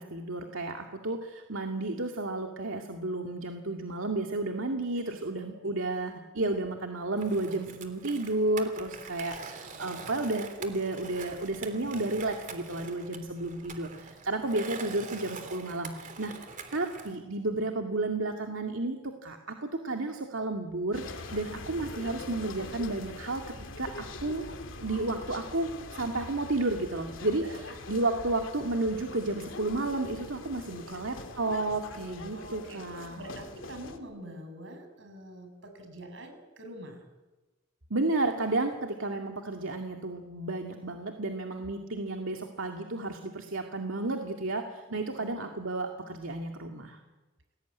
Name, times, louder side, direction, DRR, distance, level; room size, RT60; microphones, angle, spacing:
voice 1, 0.0-23.4 23.8-24.4 24.8-27.4 27.9-33.2 37.9-47.0, right 2 dB, 90° right, 3 dB, 2.3 m, -32 dB
Skateboard, 7.2-17.2, right 4 dB, 40° right, 3.3 m, -44 dB
sound 1, 20.9-34.0, left 2 dB, 75° left, 2.7 m, -43 dB
voice 2, 32.3-32.8 33.2-37.0 44.9-45.5, right 1 dB, 70° right, 7 dB, 6.8 m, -46 dB
29.5 x 21.0 x 9.5 m, 1.2 s
head